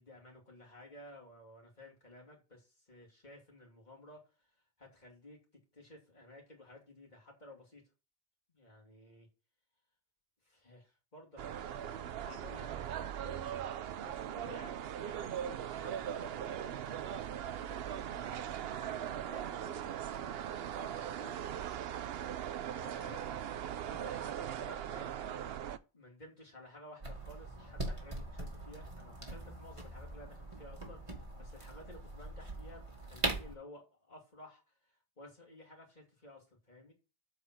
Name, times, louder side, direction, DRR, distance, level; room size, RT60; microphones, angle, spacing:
voice 1, 0.0-4.2 4.8-5.4 5.7-7.8 8.5-9.3 10.4-20.0 20.8-21.4 22.7-23.5 23.9-25.2 25.9-36.9, left 1 dB, 45° left, -1 dB, 2.9 m, -54 dB
sound 1, 11.4-25.8, right 10 dB, 70° right, 0.8 m, -40 dB
sound 2, 27.0-33.5, right 2 dB, 30° right, 1.9 m, -41 dB
8.1 x 4.9 x 6.1 m, 0.31 s
omnidirectional pair, 1.1 m